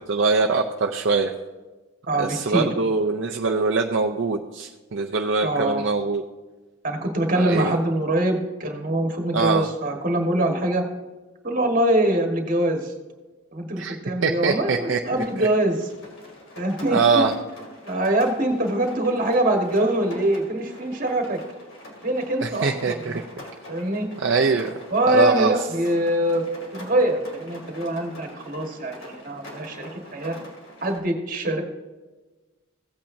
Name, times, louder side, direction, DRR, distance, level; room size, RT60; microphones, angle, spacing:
voice 1, 0.1-1.3 2.2-6.2 7.3-7.7 9.3-9.7 13.8-13.9 14.2-15.0 16.9-17.3 22.4-23.2 24.2-24.7 25.1-25.5, right 4 dB, 60° right, 2 dB, 0.5 m, -22 dB
voice 2, 2.1-2.7 5.4-5.8 6.8-10.8 11.4-12.9 13.5-15.9 16.6-17.2 17.8-21.4 22.0-23.2 23.7-24.1 24.9-26.5 26.7-30.4 30.8-31.6, right 1 dB, 40° right, 3 dB, 1.5 m, -24 dB
Rain, 15.2-31.0, left 1 dB, 70° left, 2.6 m, -44 dB
16.0 x 8.7 x 2.7 m, 1.2 s
head